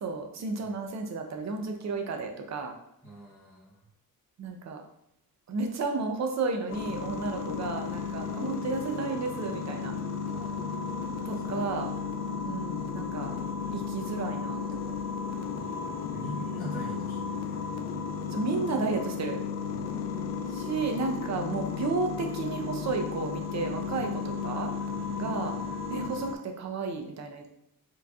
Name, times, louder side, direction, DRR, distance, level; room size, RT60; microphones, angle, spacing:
voice 1, 0.0-2.8 4.4-4.8 5.5-9.9 11.3-11.9 12.4-13.3 13.7-15.0 18.3-19.4 20.5-24.7 25.2-25.6 25.9-27.5, right 3 dB, 50° right, 4 dB, 0.7 m, -32 dB
voice 2, 3.0-3.8 8.2-8.3 10.3-11.2 11.5-12.1 15.5-17.6 19.7-20.4 23.8-24.1 24.9-25.4, right 1 dB, 10° right, -8 dB, 1.1 m, -45 dB
sound 1, 6.7-26.4, left 6 dB, 50° left, 0.4 m, -34 dB
4.5 x 3.2 x 2.3 m, 0.77 s
cardioid pair, 125°, 35 cm